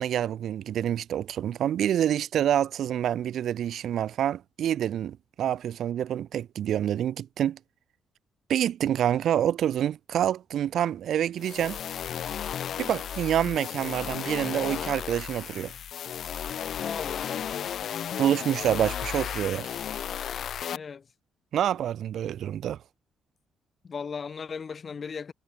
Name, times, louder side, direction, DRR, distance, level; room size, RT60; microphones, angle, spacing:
voice 1, 0.0-7.6 8.5-11.8 12.8-15.7 18.2-19.8 21.5-22.8, right 10 dB, 70° right, 0.4 m, -27 dB
sound 1, 11.4-20.8, left 9 dB, 65° left, 0.7 m, -34 dB
voice 2, 16.8-17.8 20.7-21.1 23.8-25.3, left 6 dB, 40° left, 1.8 m, -37 dB
cardioid pair, 90°, 0 cm